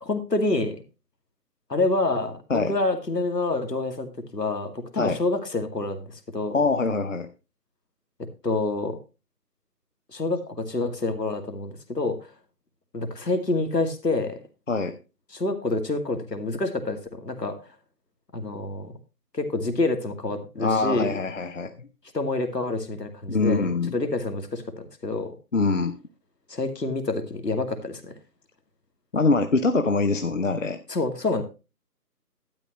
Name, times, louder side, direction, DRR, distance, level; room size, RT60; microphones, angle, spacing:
voice 1, 0.0-0.8 1.7-6.6 8.2-9.0 10.1-12.3 12.9-14.4 15.3-17.6 18.3-18.9 19.3-21.2 22.1-25.3 26.5-28.1 30.9-31.4, left 2 dB, 75° left, 7 dB, 2.5 m, -27 dB
voice 2, 6.5-7.3 14.7-14.9 20.6-21.9 23.3-23.9 25.5-25.9 29.1-30.8, left 3 dB, 50° left, 8 dB, 1.0 m, -24 dB
12.0 x 9.9 x 3.0 m, 0.30 s
figure-of-eight pair, 155°, 49 cm